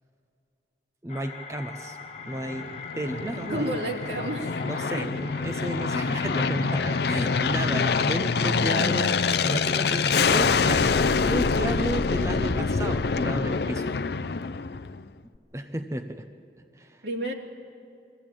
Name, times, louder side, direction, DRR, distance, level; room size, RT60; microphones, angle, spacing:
voice 1, 1.0-2.0 2.3-2.7 2.9-3.8 4.6-13.9 15.5-16.3 16.7-17.1, right 1 dB, 15° right, 5 dB, 0.7 m, -33 dB
sound 1, 1.1-11.1, left 5 dB, 35° left, 0.9 m, -42 dB
Aircraft, 2.3-15.1, left 5 dB, 65° left, 0.5 m, -25 dB
voice 2, 3.5-4.5 5.0-5.1 17.0-17.3, right 1 dB, 75° right, 0 dB, 2.7 m, -30 dB
24.0 x 15.0 x 8.9 m, 2.6 s
head